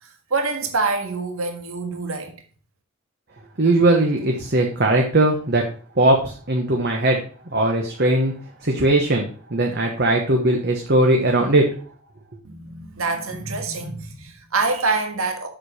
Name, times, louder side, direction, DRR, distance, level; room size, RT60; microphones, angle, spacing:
voice 1, 0.0-2.3 12.4-15.5, right 3 dB, 75° right, 1.7 m, -26 dB
voice 2, 3.6-5.6 6.0-7.2 7.5-8.3 8.6-11.7, right 2 dB, 50° right, 1.2 m, -19 dB
7.7 x 6.8 x 4.3 m
head